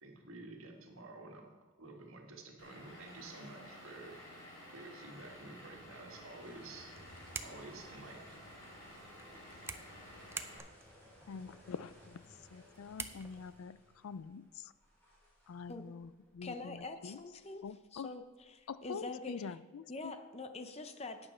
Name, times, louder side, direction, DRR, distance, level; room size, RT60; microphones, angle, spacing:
voice 1, 0.0-1.5 1.8-4.3 4.7-6.9 7.4-8.4, right 2 dB, 80° right, 2 dB, 1.6 m, -51 dB
Vehicle / Engine, 2.6-10.6, left 1 dB, 65° left, 3.6 m, -53 dB
sound 1, 5.2-13.6, right 4 dB, 10° right, 0.4 m, -50 dB
sound 2, 6.4-19.0, left 1 dB, 10° left, 3.0 m, -62 dB
voice 2, 11.3-12.2 12.5-14.7 15.5-17.2 17.6-18.1 18.7-20.1, left 6 dB, 90° left, 16 dB, 0.4 m, -46 dB
voice 3, 16.4-17.6 17.9-18.2 18.5-19.6 19.9-21.2, left 2 dB, 30° left, 8 dB, 0.7 m, -44 dB
11.5 x 8.7 x 4.4 m, 1.3 s
head